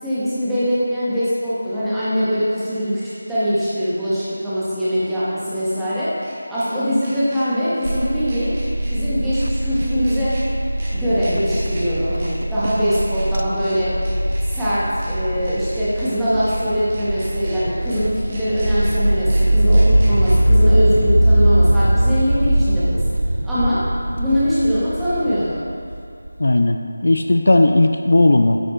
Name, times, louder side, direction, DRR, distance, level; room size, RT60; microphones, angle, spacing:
voice 1, 0.0-3.0 3.3-6.1 6.5-8.5 8.9-10.3 10.9-13.9 14.5-23.0 23.4-23.8 24.2-25.6, equal, 5° right, -14 dB, 1.8 m, -22 dB
sound 1, 2.4-2.5 4.9-6.7 7.0-7.4 7.8-8.0 8.3-8.9 9.3-9.4 9.8-10.4 10.8-10.9 11.2-11.8 12.2-12.3 12.6-13.2 13.6-13.7 14.0-14.6 15.0-15.1 15.4-16.1 16.4-16.6 16.9-17.5 17.9-18.0 18.3-18.9 19.3-19.4 19.7-20.3, right 1 dB, 30° right, 2.1 m, -41 dB
sound 2, 7.8-26.3, right 1 dB, 90° right, 0.6 m, -20 dB
voice 2, 26.4-28.6, left 2 dB, 65° left, 5 dB, 0.5 m, -15 dB
9.3 x 6.5 x 4.0 m, 2.4 s
figure-of-eight pair, 165°, 0 cm